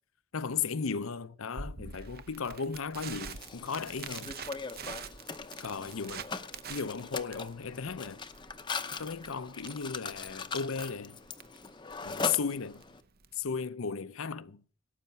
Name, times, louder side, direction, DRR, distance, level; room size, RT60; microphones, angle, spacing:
voice 1, 0.3-4.3 5.6-6.2 6.7-8.2 8.9-11.2 12.0-12.8 13.4-14.6, left 6 dB, 70° left, 0.6 m, -35 dB
Crackle, 1.6-13.5, right 5 dB, 45° right, 0.8 m, -46 dB
Mechanisms, 3.2-13.0, left 4 dB, 20° left, 0.7 m, -40 dB
17.5 x 8.4 x 5.8 m
head